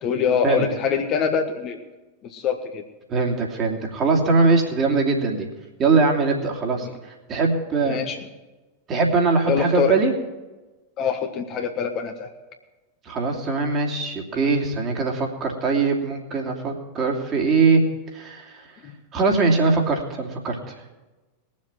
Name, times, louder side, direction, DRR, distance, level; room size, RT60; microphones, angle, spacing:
voice 1, 0.0-1.8 2.2-2.8 6.8-6.9 7.9-8.2 9.5-10.0 11.0-12.3 18.8-18.9, left 6 dB, 35° left, 5 dB, 1.5 m, -24 dB
voice 2, 3.1-5.5 5.8-6.9 7.3-8.0 8.9-10.1 13.1-17.8 18.1-18.6 19.1-20.6, right 4 dB, 30° right, 1 dB, 2.7 m, -21 dB
21.0 x 7.5 x 6.1 m, 1.2 s
figure-of-eight pair, 90°, 0 cm